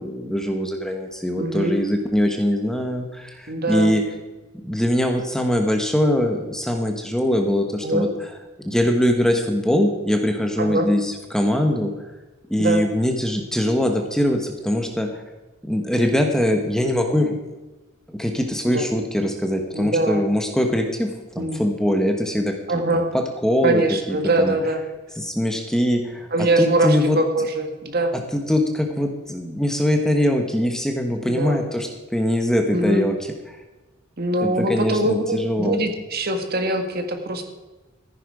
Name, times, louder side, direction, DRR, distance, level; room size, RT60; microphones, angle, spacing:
voice 1, 0.0-4.0 4.6-8.1 8.6-11.9 12.5-15.2 15.6-17.4 18.1-23.8 24.1-24.5 25.2-26.3 26.6-27.2 28.1-33.1 33.5-33.6 34.4-35.8, left 1 dB, 5° left, 3 dB, 1.1 m, -22 dB
voice 2, 1.4-1.8 3.5-3.9 7.8-8.1 10.6-10.9 12.6-12.8 18.6-18.9 19.7-20.3 21.4-21.6 22.7-23.1 23.6-24.8 26.3-28.1 31.3-31.6 32.7-33.1 34.2-37.4, right 2 dB, 50° right, 5 dB, 1.6 m, -22 dB
14.5 x 10.0 x 4.8 m, 1.2 s
head